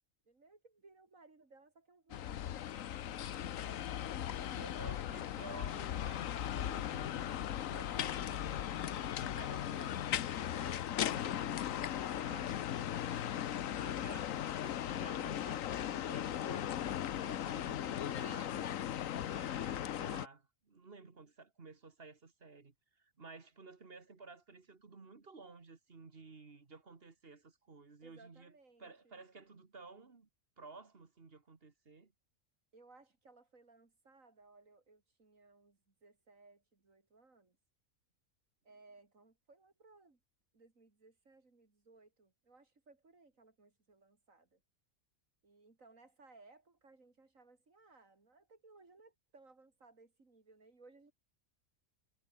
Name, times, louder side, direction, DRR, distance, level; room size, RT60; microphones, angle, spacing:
voice 1, 0.3-2.7 12.1-13.2 28.0-29.2 32.7-37.6 38.6-40.2 40.5-44.6 45.4-51.1, right 3 dB, 85° right, 3.9 m, -63 dB
sound 1, 2.1-20.3, left 10 dB, 90° left, 1.2 m, -38 dB
voice 2, 3.6-12.5 12.7-12.9 13.4-18.7 19.1-28.5 28.8-30.3 30.6-32.1, right 4 dB, 45° right, 2.0 m, -55 dB
omnidirectional pair, 1.4 m